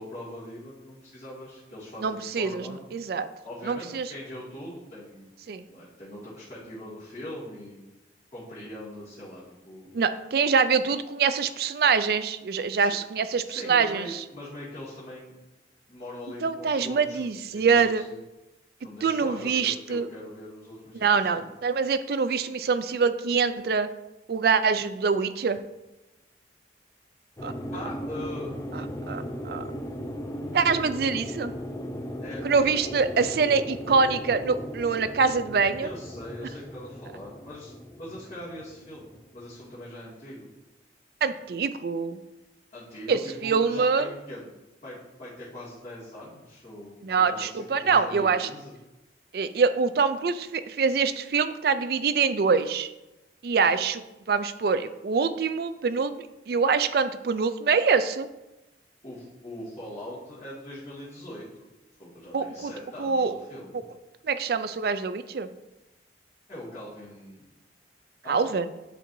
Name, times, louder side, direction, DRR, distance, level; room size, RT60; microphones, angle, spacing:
voice 1, 0.0-2.8 3.4-5.3 5.7-7.8 8.3-9.9 12.7-12.9 13.5-15.3 15.9-18.2 18.8-21.5 27.7-28.5 32.2-32.5 35.8-40.5 42.7-44.5 44.8-48.7 59.0-61.7 62.0-63.9 66.5-67.4 68.2-68.4, left 1 dB, 35° left, -12 dB, 1.9 m, -41 dB
voice 2, 2.0-3.3 3.7-4.1 5.5-5.6 9.9-14.2 16.4-18.0 19.0-20.1 20.9-23.9 24.3-25.6 27.4-27.5 29.1-29.7 30.5-31.5 32.4-35.9 41.2-42.2 43.1-44.1 47.0-48.5 49.3-52.9 53.4-56.1 56.5-58.3 62.3-62.7 63.0-63.3 64.2-65.5 68.3-68.7, right 5 dB, 55° right, 12 dB, 0.4 m, -25 dB
sound 1, 27.4-39.7, equal, 15° left, 0.5 m, -37 dB
9.9 x 4.4 x 2.7 m, 1.0 s
head